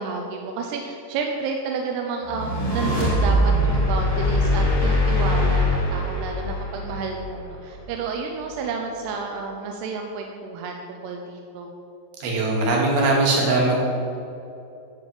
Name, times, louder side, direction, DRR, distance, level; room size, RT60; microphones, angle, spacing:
voice 1, 0.0-11.7, right 4 dB, 80° right, 2 dB, 2.5 m, -30 dB
sound 1, 2.3-7.6, left 1 dB, 15° left, 1.5 m, -22 dB
voice 2, 12.2-13.8, right 2 dB, 60° right, -2 dB, 3.5 m, -20 dB
11.5 x 5.1 x 7.6 m, 2.7 s
omnidirectional pair, 5.3 m